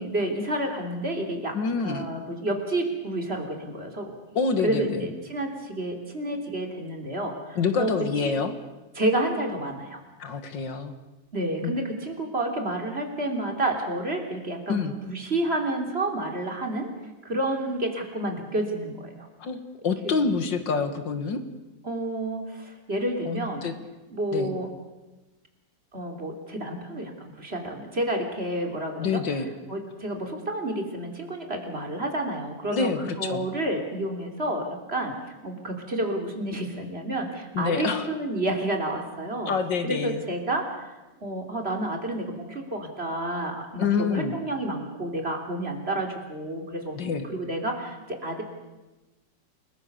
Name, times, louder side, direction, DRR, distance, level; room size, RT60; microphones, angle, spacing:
voice 1, 0.0-4.2 4.6-7.9 8.2-8.4 8.9-10.0 11.3-16.9 17.2-19.3 21.8-23.6 24.1-24.7 25.9-29.2 29.7-35.2 35.4-39.5 39.8-40.8 41.2-47.0 47.3-48.4, right 1 dB, 35° right, 2 dB, 3.4 m, -30 dB
voice 2, 1.5-2.1 4.4-5.1 7.6-8.5 10.2-10.9 11.6-11.7 14.7-14.9 19.4-21.4 23.3-23.7 24.3-24.5 29.0-29.5 32.7-33.5 37.5-38.1 39.5-40.2 43.8-44.4 47.0-47.3, left 5 dB, 80° left, 8 dB, 2.5 m, -27 dB
29.5 x 20.5 x 6.8 m, 1.1 s
omnidirectional pair, 2.0 m